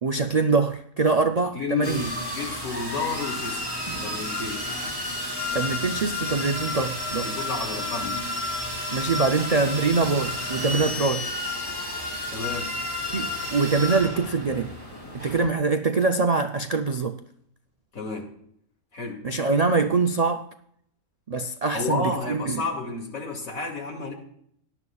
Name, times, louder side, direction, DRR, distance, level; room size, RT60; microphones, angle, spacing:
voice 1, 0.0-2.0 5.5-7.3 8.9-11.3 13.1-14.7 15.1-17.2 19.2-20.5 21.3-22.6, right 4 dB, 85° right, 0.3 m, -24 dB
voice 2, 1.5-3.7 4.0-4.7 7.2-8.3 12.3-12.8 17.9-18.3 18.9-19.3 21.7-24.1, left 3 dB, 65° left, 2.8 m, -31 dB
sound 1, 1.8-15.5, left 2 dB, 15° left, 3.0 m, -31 dB
18.0 x 11.0 x 2.4 m
omnidirectional pair, 1.5 m